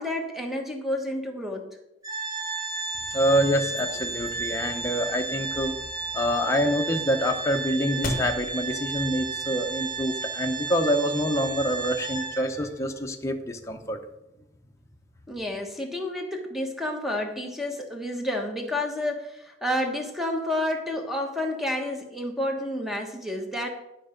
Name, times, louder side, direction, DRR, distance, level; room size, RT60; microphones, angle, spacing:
voice 1, 0.0-1.7 15.3-23.7, left 1 dB, ahead, 2 dB, 1.2 m, -30 dB
Organ, 2.0-12.7, right 4 dB, 20° right, 1.5 m, -33 dB
sound 1, 3.0-10.1, left 1 dB, 50° left, 1.6 m, -40 dB
voice 2, 3.1-5.7 6.1-14.0, equal, 15° left, 3 dB, 0.8 m, -26 dB
11.0 x 5.4 x 5.1 m, 0.91 s
head